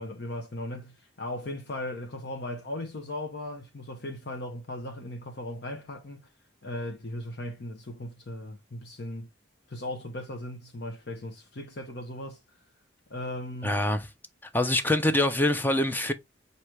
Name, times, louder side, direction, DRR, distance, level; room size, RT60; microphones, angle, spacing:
voice 1, 0.0-6.3 6.6-9.3 9.7-12.4 13.1-13.8, left 1 dB, 60° left, 0.8 m, -37 dB
voice 2, 13.6-14.1 14.5-16.1, left 1 dB, 10° left, 0.5 m, -24 dB
6.0 x 2.7 x 3.1 m
head